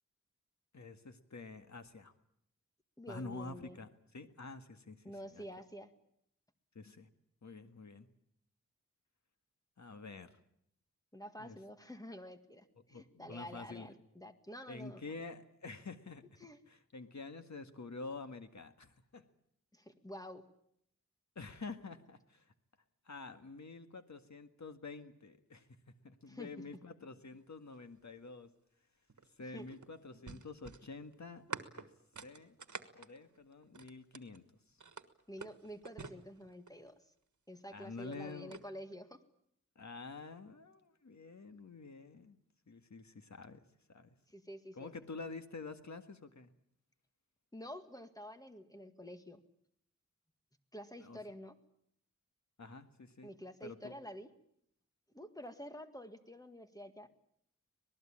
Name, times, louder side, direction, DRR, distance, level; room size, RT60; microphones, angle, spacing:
voice 1, 0.7-2.1 3.1-5.4 6.8-7.1 7.4-8.1 9.8-10.4 11.4-11.6 12.9-13.9 14.7-16.2 16.7-19.2 21.4-22.5 23.1-25.8 26.0-28.5 29.4-31.4 31.8-31.9 32.2-32.6 32.9-34.4 37.7-38.6 39.8-42.4 42.7-43.6 43.9-44.2 44.7-46.5 51.0-51.2 52.6-53.3 53.6-54.0, left 3 dB, 70° left, 8 dB, 1.8 m, -48 dB
voice 2, 3.0-3.8 5.0-5.9 11.1-15.0 16.4-16.6 19.7-20.5 26.3-26.5 29.5-29.7 35.3-36.9 37.5-39.2 44.3-44.9 47.5-49.4 50.7-51.6 53.2-54.3 55.1-57.1, equal, 10° left, 7 dB, 1.9 m, -49 dB
sound 1, 29.1-34.4 34.8-36.9 37.9-38.7, right 4 dB, 75° right, 1.6 m, -48 dB
26.0 x 19.5 x 8.8 m, 0.71 s
wide cardioid pair, 80°, 29 cm